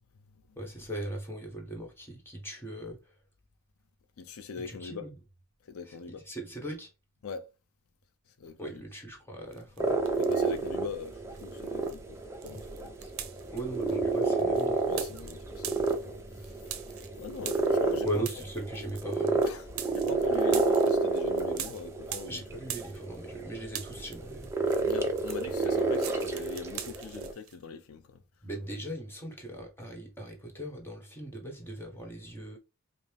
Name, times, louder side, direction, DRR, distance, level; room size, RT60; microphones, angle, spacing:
voice 1, 0.6-3.0 4.7-5.1 5.9-6.0 6.2-6.9 8.6-10.0 13.0-13.1 13.5-14.9 18.0-19.4 22.3-24.9 28.4-32.6, right 1 dB, 10° left, 1.1 m, -39 dB
voice 2, 4.2-5.1 5.6-6.3 7.2-7.5 8.4-8.8 10.2-12.9 14.9-16.6 17.2-18.3 19.4-22.4 24.8-28.2, left 5 dB, 75° left, 0.5 m, -42 dB
sound 1, 9.5-10.7 11.0-23.4 23.7-27.6, right 10 dB, 70° right, 0.7 m, -44 dB
sound 2, 9.8-27.3, right 3 dB, 15° right, 0.6 m, -30 dB
5.2 x 2.0 x 3.3 m
head